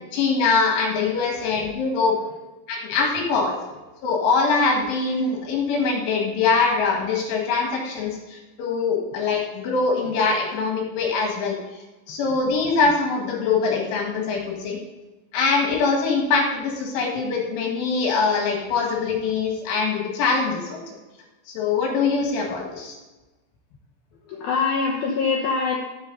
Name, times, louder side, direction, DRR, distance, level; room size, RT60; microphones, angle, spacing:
voice 1, 0.1-2.1 2.7-3.6 4.0-11.6 12.1-14.8 15.3-20.8 21.5-22.9, left 4 dB, 70° left, 0 dB, 4.0 m, -23 dB
voice 2, 24.2-25.9, left 5 dB, 90° left, -2 dB, 2.1 m, -25 dB
12.5 x 7.4 x 4.0 m, 1.1 s
omnidirectional pair, 6.0 m